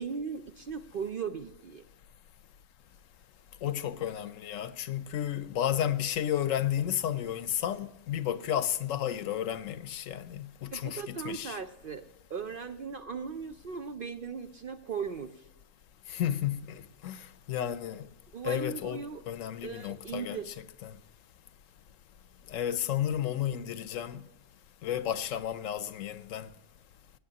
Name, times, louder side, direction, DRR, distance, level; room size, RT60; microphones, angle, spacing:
voice 1, 0.0-1.9 10.7-12.0 12.3-15.3 18.3-19.2 19.6-20.6, right 6 dB, 55° right, 0.6 m, -38 dB
voice 2, 3.6-11.6 16.1-18.1 18.4-21.0 22.5-24.2 24.8-26.5, left 10 dB, 75° left, 1.0 m, -32 dB
17.0 x 9.4 x 2.8 m
omnidirectional pair, 1.4 m